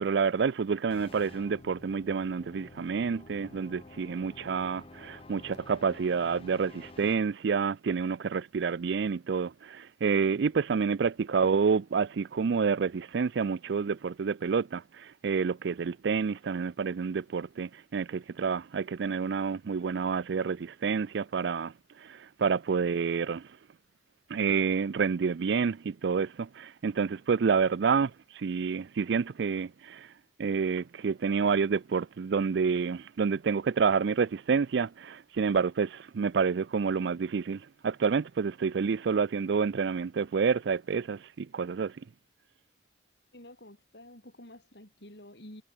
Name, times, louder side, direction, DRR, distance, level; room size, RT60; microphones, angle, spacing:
voice 1, 0.0-21.7 22.0-23.5 24.3-30.1 30.4-41.9, right 5 dB, 70° right, 0.4 m, -28 dB
sound 1, 0.9-7.1, left 2 dB, 30° left, 0.7 m, -50 dB
voice 2, 43.3-45.6, left 1 dB, 65° left, 5.8 m, -50 dB
head